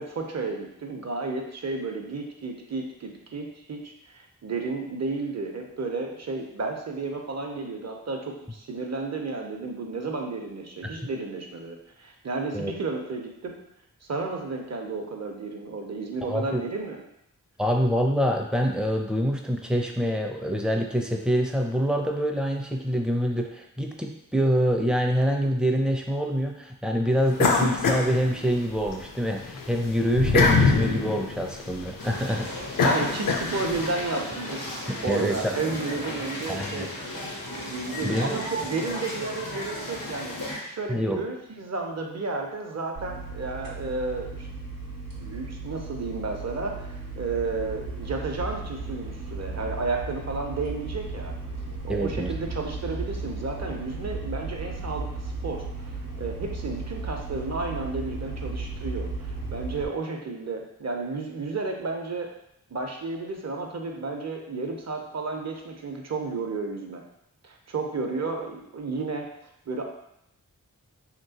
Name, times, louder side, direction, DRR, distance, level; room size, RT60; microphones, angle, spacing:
voice 1, 0.0-13.6 14.0-17.0 32.5-36.9 37.7-44.5 45.2-51.3 51.8-55.9 56.2-62.3 62.7-67.0 67.4-69.3 69.7-69.9, right 3 dB, 50° right, 2 dB, 0.6 m, -32 dB
voice 2, 16.2-16.6 17.6-32.5 34.9-35.6 36.5-36.9 38.0-38.4 40.9-41.2 51.9-52.3, equal, ahead, 2 dB, 0.4 m, -25 dB
sound 1, 27.4-28.9 29.3-33.9, left 4 dB, 70° left, 0.5 m, -24 dB
sound 2, 32.0-40.6, left 1 dB, 90° left, 0.9 m, -35 dB
sound 3, 43.0-59.9, right 3 dB, 90° right, 0.7 m, -35 dB
3.1 x 2.9 x 2.8 m, 0.79 s
wide cardioid pair, 50°, 33 cm